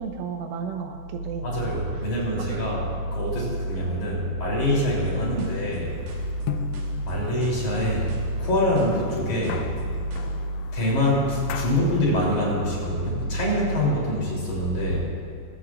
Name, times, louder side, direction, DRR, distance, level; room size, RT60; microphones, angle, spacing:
voice 1, 0.0-1.5 2.4-2.7 5.3-5.5, right 6 dB, 85° right, 4 dB, 3.4 m, -33 dB
voice 2, 1.4-5.9 7.0-8.1 8.4-9.6 10.7-15.0, equal, 40° left, -5 dB, 4.4 m, -24 dB
sound 1, 5.1-10.3, right 2 dB, 65° right, 3.6 m, -48 dB
sound 2, 5.6-12.1, left 9 dB, 85° left, 3.1 m, -38 dB
24.0 x 14.0 x 2.5 m, 2.3 s
omnidirectional pair, 5.5 m